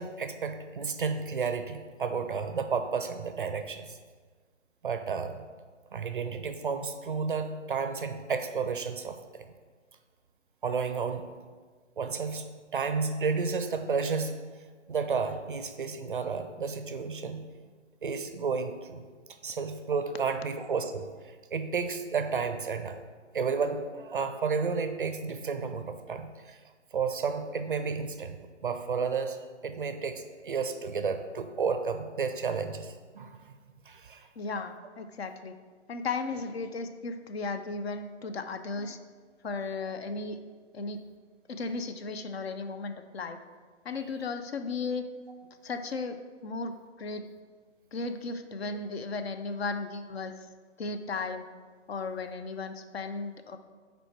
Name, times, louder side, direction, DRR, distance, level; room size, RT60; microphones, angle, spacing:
voice 1, 0.0-4.0 4.8-5.4 5.9-9.4 10.6-11.3 12.0-12.5 12.7-14.4 14.9-17.4 18.0-19.1 19.4-23.0 23.3-26.6 26.9-29.4 29.6-33.5 33.9-34.3, right 5 dB, 45° right, 9 dB, 0.4 m, -32 dB
voice 2, 34.4-35.5 35.9-39.0 39.4-40.4 40.7-41.0 41.5-43.4 43.8-45.1 45.6-46.2 46.4-47.2 47.9-50.4 50.8-51.4 51.9-53.6, left 4 dB, 55° left, 9 dB, 0.5 m, -35 dB
5.2 x 4.5 x 4.5 m, 1.5 s
hypercardioid pair, 150°, 37 cm